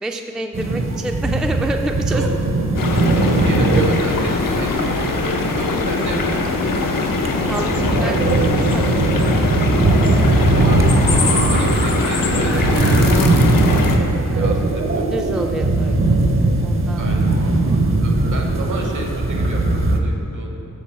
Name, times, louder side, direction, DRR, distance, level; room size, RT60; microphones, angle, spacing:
voice 1, 0.0-2.3 7.5-8.9 14.2-14.6 15.1-16.2 16.6-17.2, right 1 dB, ahead, 4 dB, 0.3 m, -28 dB
sound 1, 0.5-20.0, right 2 dB, 40° right, 0.7 m, -19 dB
sound 2, 2.8-14.0, left 3 dB, 80° left, 0.7 m, -21 dB
voice 2, 2.9-6.4 10.2-13.0 13.3-13.9 14.4-15.1 17.0-17.3 18.0-20.6, right 2 dB, 65° right, 2 dB, 1.1 m, -31 dB
7.5 x 4.0 x 6.7 m, 3.0 s
wide cardioid pair, 100°, 33 cm